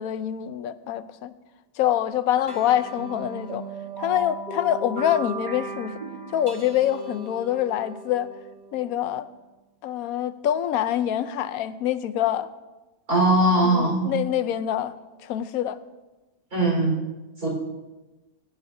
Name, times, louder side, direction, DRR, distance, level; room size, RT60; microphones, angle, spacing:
voice 1, 0.0-1.3 1.8-3.6 4.0-6.0 6.3-8.3 8.7-9.3 9.8-12.5 13.6-14.9 15.2-15.8, left 11 dB, 85° left, 1.1 m, -25 dB
sound 1, 2.5-9.3, right 2 dB, 30° right, 1.2 m, -37 dB
voice 2, 13.1-14.0 16.5-17.0 17.4-17.5, right 1 dB, 75° right, 4.7 m, -20 dB
20.0 x 10.0 x 2.7 m
omnidirectional pair, 1.5 m